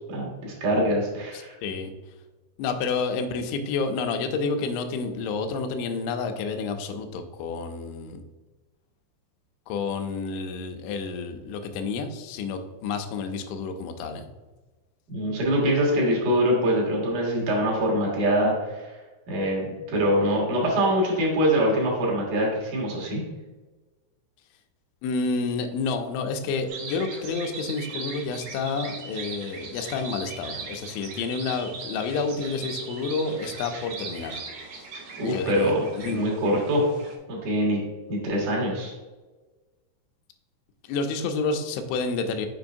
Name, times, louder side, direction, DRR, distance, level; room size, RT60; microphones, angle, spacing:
voice 1, 0.1-1.5 15.1-19.0 19.3-23.2 35.2-36.8 37.3-37.8 38.1-38.9, equal, 55° right, -3 dB, 2.6 m, -24 dB
voice 2, 1.3-1.9 2.6-8.2 9.7-14.3 25.0-34.4 34.7-34.9 35.1-36.2 40.8-42.5, left 4 dB, 85° left, 6 dB, 2.9 m, -29 dB
sound 1, 26.7-37.2, right 4 dB, 85° right, 1.7 m, -39 dB
6.9 x 5.2 x 2.6 m, 1.2 s
omnidirectional pair, 5.4 m